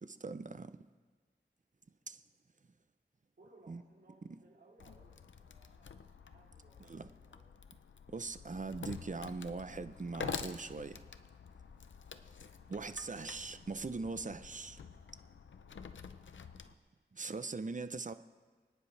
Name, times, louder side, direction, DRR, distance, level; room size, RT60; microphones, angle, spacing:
voice 1, 0.0-0.9 2.1-2.2 3.7-3.8 6.9-7.1 8.1-11.0 12.7-14.8 17.1-18.1, right 3 dB, 40° right, 0.7 m, -41 dB
voice 2, 3.4-7.6 15.6-15.9, right 2 dB, 70° right, 3.5 m, -64 dB
Wood, 4.8-16.7, left 6 dB, 90° left, 0.6 m, -48 dB
29.5 x 10.0 x 3.3 m
wide cardioid pair, 45°, 19 cm